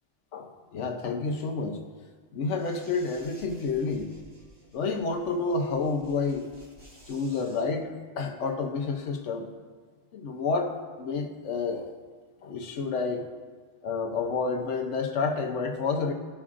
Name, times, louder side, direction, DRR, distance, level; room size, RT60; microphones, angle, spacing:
voice 1, 0.3-1.8 2.3-4.1 4.7-6.5 7.1-9.5 10.1-11.9 12.4-13.2 13.8-16.1, left 4 dB, 70° left, 4 dB, 1.0 m, -29 dB
sound 1, 2.6-7.6, equal, 5° right, 2.0 m, -54 dB
14.0 x 5.3 x 2.5 m, 1.5 s
omnidirectional pair, 1.3 m